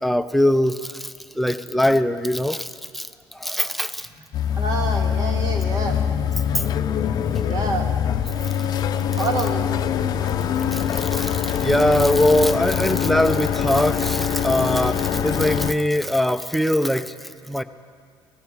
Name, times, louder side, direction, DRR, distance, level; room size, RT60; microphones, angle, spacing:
voice 1, 0.0-4.1 6.5-6.6 10.2-17.6, left 1 dB, ahead, 9 dB, 0.5 m, -22 dB
sound 1, 4.3-15.7, left 8 dB, 45° left, 0.6 m, -23 dB
voice 2, 4.6-6.0 7.5-7.9 9.1-9.7, right 3 dB, 45° right, 3 dB, 1.9 m, -27 dB
17.0 x 17.0 x 4.7 m, 2.1 s
cardioid pair, 130°, 9 cm